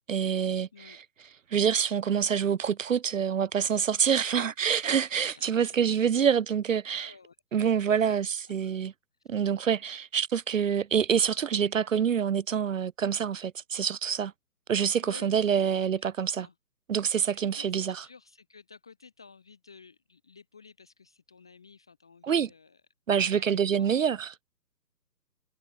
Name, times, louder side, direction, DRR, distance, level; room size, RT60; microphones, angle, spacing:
voice 1, 0.1-1.0 1.5-7.1 7.5-8.9 9.3-14.3 14.7-16.5 16.9-18.0 22.2-22.5 23.1-24.3, right 7 dB, 50° right, 0.8 m, -26 dB
voice 2, 4.0-4.4 5.3-6.1 6.9-7.4 7.9-8.2 8.4-8.8 15.0-16.5 17.0-22.8 23.2-24.0, left 5 dB, 5° left, 0.6 m, -54 dB
figure-of-eight pair, 140°, 49 cm